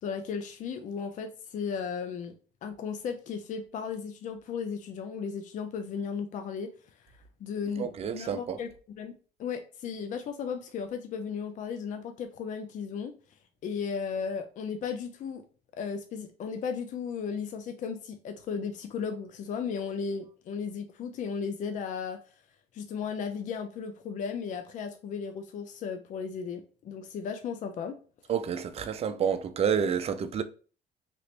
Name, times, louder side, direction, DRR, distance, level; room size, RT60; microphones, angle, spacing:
voice 1, 0.0-2.4 2.6-6.7 7.4-13.1 13.6-15.4 15.7-22.2 22.7-27.9, left 6 dB, 50° left, 0.4 m, -35 dB
voice 2, 7.8-8.6 28.3-30.4, right 7 dB, 35° right, 0.4 m, -29 dB
3.0 x 2.5 x 3.1 m
cardioid pair, 110°, 17 cm